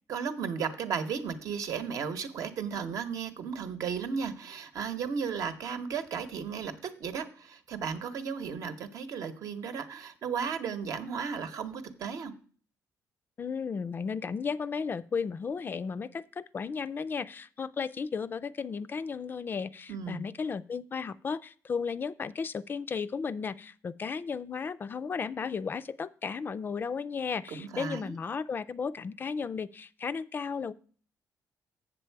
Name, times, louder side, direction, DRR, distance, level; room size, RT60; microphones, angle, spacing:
voice 1, 0.1-12.3 19.9-20.2 27.5-28.2, right 6 dB, 60° right, 9 dB, 0.9 m, -35 dB
voice 2, 13.4-30.7, left 5 dB, 30° left, 13 dB, 0.3 m, -34 dB
7.5 x 7.2 x 4.5 m, 0.43 s
cardioid pair, 130°, 6 cm